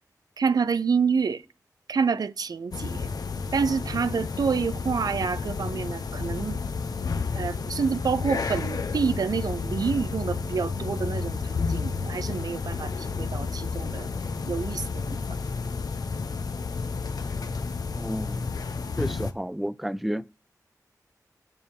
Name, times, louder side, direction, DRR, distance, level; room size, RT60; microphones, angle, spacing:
voice 1, 0.4-1.4 1.9-3.1 3.5-6.6 7.3-14.1 14.5-15.2, right 5 dB, 75° right, 0.5 m, -28 dB
sound 1, 2.7-19.3, left 4 dB, 75° left, 0.9 m, -31 dB
voice 2, 17.9-18.5 19.0-20.2, equal, ahead, 0.4 m, -31 dB
13.5 x 5.3 x 4.8 m
wide cardioid pair, 90°, 7 cm